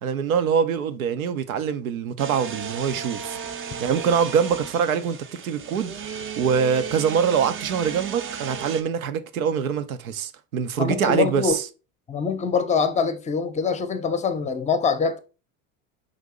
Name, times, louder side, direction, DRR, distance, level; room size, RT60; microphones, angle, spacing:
voice 1, 0.0-3.4 3.8-5.2 5.4-11.6, right 7 dB, 85° right, 0.7 m, -24 dB
sound 1, 2.2-8.8, right 6 dB, 30° right, 0.6 m, -35 dB
voice 2, 10.8-11.6 12.1-15.2, left 5 dB, 15° left, 0.6 m, -24 dB
5.1 x 2.7 x 3.6 m
hypercardioid pair, 80°, 41 cm